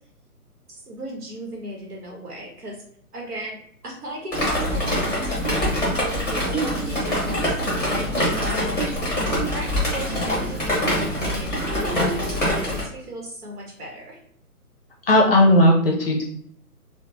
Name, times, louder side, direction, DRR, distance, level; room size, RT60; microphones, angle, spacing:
voice 1, 0.7-2.8 3.1-14.2, right 1 dB, 80° right, -1 dB, 0.9 m, -36 dB
Drip, 4.3-12.8, equal, 5° left, 0.9 m, -24 dB
voice 2, 15.1-16.2, left 1 dB, 40° left, 0 dB, 0.5 m, -16 dB
2.8 x 2.1 x 2.5 m, 0.65 s
figure-of-eight pair, 145°, 46 cm